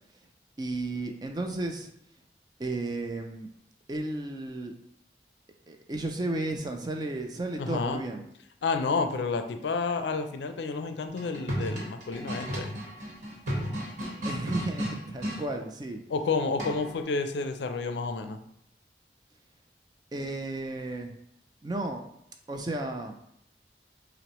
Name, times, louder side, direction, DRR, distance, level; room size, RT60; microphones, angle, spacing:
voice 1, 0.6-1.9 2.6-3.5 3.9-4.7 5.7-8.2 14.2-16.0 20.1-21.1 21.6-22.0 22.5-23.2, right 2 dB, 25° right, 4 dB, 0.3 m, -33 dB
voice 2, 7.6-8.0 8.6-12.7 16.1-18.4, left 4 dB, 80° left, 8 dB, 0.4 m, -30 dB
sound 1, 11.1-15.4 16.6-17.0, equal, 45° right, 1.2 m, -34 dB
5.9 x 2.0 x 3.0 m, 0.74 s
head